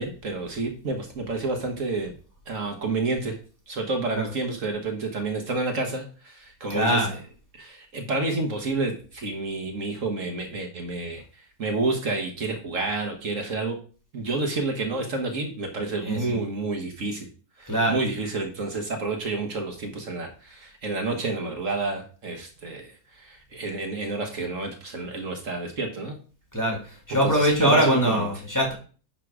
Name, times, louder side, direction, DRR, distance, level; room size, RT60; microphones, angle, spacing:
voice 1, 0.0-2.1 2.5-3.3 3.7-7.2 7.5-13.8 14.1-17.3 17.6-26.1 27.2-28.3, right 3 dB, 60° right, 3 dB, 1.6 m, -29 dB
voice 2, 6.7-7.1 16.0-16.4 17.7-18.0 26.5-26.8 27.1-28.7, equal, 10° left, -1 dB, 2.3 m, -22 dB
11.0 x 3.8 x 4.9 m, 0.39 s
omnidirectional pair, 1.6 m